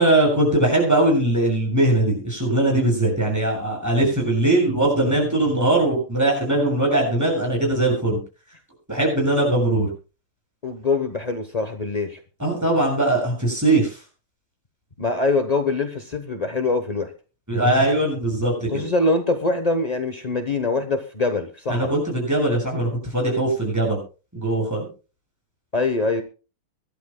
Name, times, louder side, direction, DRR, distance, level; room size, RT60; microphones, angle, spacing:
voice 1, 0.0-8.2 8.9-9.9 12.4-14.0 17.5-18.8 21.7-24.0 24.3-24.9, right 1 dB, 5° right, -2 dB, 7.8 m, -20 dB
voice 2, 10.6-12.2 15.0-17.1 18.7-21.9 25.7-26.2, left 3 dB, 75° left, 7 dB, 0.3 m, -23 dB
24.5 x 12.0 x 2.2 m, 0.33 s
omnidirectional pair, 2.4 m